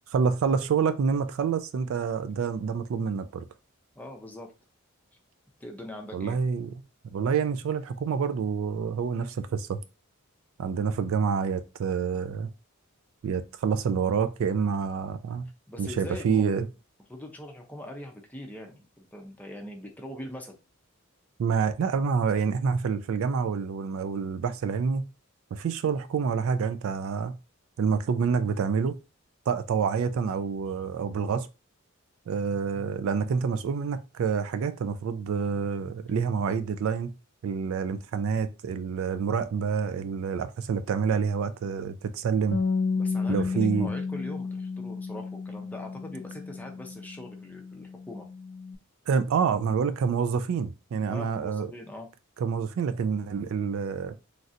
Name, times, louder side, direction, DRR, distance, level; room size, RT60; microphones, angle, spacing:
voice 1, 0.1-3.4 6.1-6.7 7.0-9.8 10.6-12.5 13.2-15.5 15.8-16.7 21.4-25.1 25.5-27.4 27.8-29.0 29.5-31.5 32.3-37.1 37.4-42.6 43.3-43.9 49.1-51.7 52.4-54.2, right 6 dB, 65° right, 0.3 m, -27 dB
voice 2, 4.0-4.5 5.6-6.4 15.7-16.4 17.1-20.5 36.5-36.6 43.0-48.3 51.1-52.1, left 1 dB, 5° left, 0.5 m, -42 dB
Bass guitar, 42.5-48.8, left 4 dB, 65° left, 0.4 m, -32 dB
3.2 x 2.5 x 2.6 m
head